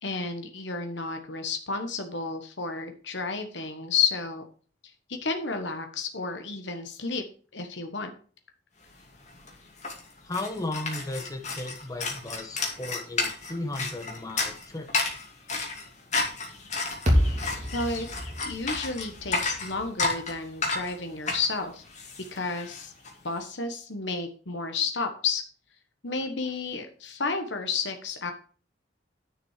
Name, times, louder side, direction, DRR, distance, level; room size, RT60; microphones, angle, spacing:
voice 1, 0.0-4.4 5.1-7.2 7.5-8.1 17.7-18.1 18.4-21.8 22.3-22.9 23.2-25.4 26.0-28.3, left 4 dB, 85° left, 6 dB, 1.3 m, -31 dB
sound 1, 9.0-9.1 9.3-23.1, left 3 dB, 40° left, 2.4 m, -32 dB
voice 2, 10.2-14.9, left 2 dB, 20° left, 6 dB, 1.2 m, -35 dB
sound 2, 17.1-21.3, equal, 40° right, 3.1 m, -29 dB
10.0 x 6.1 x 4.9 m, 0.40 s
head